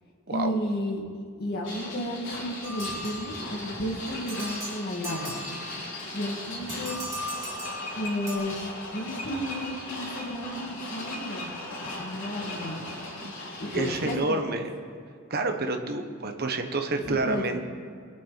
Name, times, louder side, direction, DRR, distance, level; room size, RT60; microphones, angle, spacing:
voice 1, 0.3-5.4 6.1-7.0 7.9-8.6 8.9-12.9 13.6-14.6 16.9-17.6, equal, 50° left, -2 dB, 2.0 m, -33 dB
sound 1, 1.6-14.1, left 1 dB, 65° left, 3.9 m, -38 dB
sound 2, 2.6-3.8 4.3-6.0 6.7-8.4, equal, 15° right, 3.1 m, -38 dB
voice 2, 13.7-14.7 15.3-17.6, right 2 dB, 50° right, 5 dB, 1.2 m, -28 dB
21.5 x 8.8 x 4.1 m, 2.2 s
head